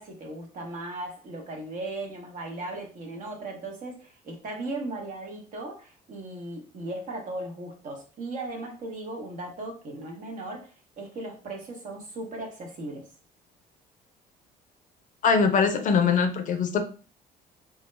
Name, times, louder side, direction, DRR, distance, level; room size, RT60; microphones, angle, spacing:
voice 1, 0.0-13.1, right 2 dB, 50° right, 2 dB, 0.9 m, -37 dB
voice 2, 15.2-16.8, left 5 dB, 50° left, 7 dB, 0.5 m, -22 dB
2.3 x 2.1 x 3.1 m, 0.36 s
cardioid pair, 110°, 17 cm